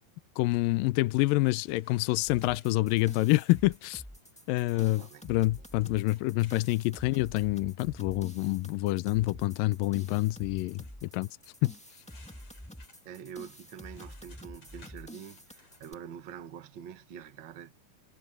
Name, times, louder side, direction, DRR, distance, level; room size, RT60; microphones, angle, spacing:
voice 1, 0.4-4.0 4.5-11.3 11.6-11.7, left 19 dB, 85° left, 2.2 m, -27 dB
sound 1, 0.6-0.7 1.1-4.3 5.8-6.7 10.8-11.0 11.9-16.0, left 3 dB, 45° left, 7.9 m, -61 dB
sound 2, 2.2-15.9, equal, 5° left, 0.5 m, -48 dB
voice 2, 4.7-5.3 13.0-17.7, right 8 dB, 80° right, 1.0 m, -46 dB
omnidirectional pair, 4.2 m